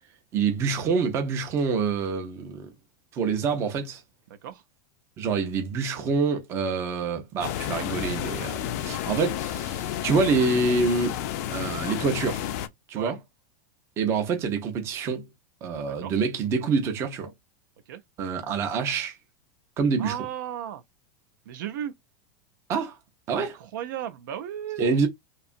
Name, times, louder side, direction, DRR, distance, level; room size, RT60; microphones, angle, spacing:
voice 1, 0.3-2.7 3.1-4.0 5.2-11.1 11.5-12.5 12.9-13.2 14.0-15.3 15.6-17.3 18.2-19.2 19.8-20.2 22.7-22.9 23.3-23.6 24.8-25.1, right 4 dB, 25° right, 0.6 m, -26 dB
voice 2, 4.3-4.6 13.0-13.1 15.8-16.2 17.9-18.0 20.0-20.8 21.5-22.0 23.4-25.0, right 10 dB, 70° right, 0.6 m, -35 dB
sound 1, 7.4-12.7, left 11 dB, 50° left, 0.4 m, -31 dB
2.8 x 2.3 x 2.5 m
supercardioid pair, 165°, 11 cm